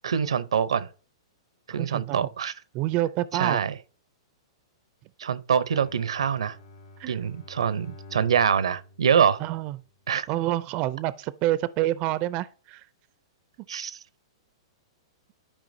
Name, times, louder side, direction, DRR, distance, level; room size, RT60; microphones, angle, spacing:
voice 1, 0.0-0.9 1.7-2.5 3.3-3.8 5.2-6.6 7.1-9.4 10.1-10.3 13.7-14.0, right 7 dB, 85° right, 0.6 m, -25 dB
voice 2, 1.7-2.3 2.7-3.6 7.0-7.2 9.4-9.8 10.3-12.8, right 15 dB, 40° right, 0.4 m, -27 dB
Bowed string instrument, 5.7-10.1, left 2 dB, 70° left, 2.0 m, -49 dB
12.0 x 4.9 x 2.7 m
hypercardioid pair, 130°, 3 cm